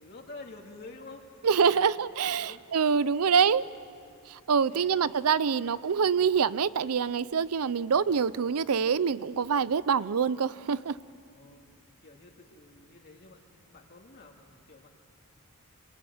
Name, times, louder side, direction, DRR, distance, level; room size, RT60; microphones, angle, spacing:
voice 1, 0.0-2.7 3.2-3.4 4.7-5.3 7.8-8.1 11.3-13.4 13.7-14.9, left 3 dB, 50° left, 1 dB, 2.3 m, -50 dB
voice 2, 1.4-3.6 4.3-11.0, right 6 dB, 80° right, 18 dB, 0.6 m, -25 dB
26.5 x 23.0 x 9.4 m, 2.4 s
head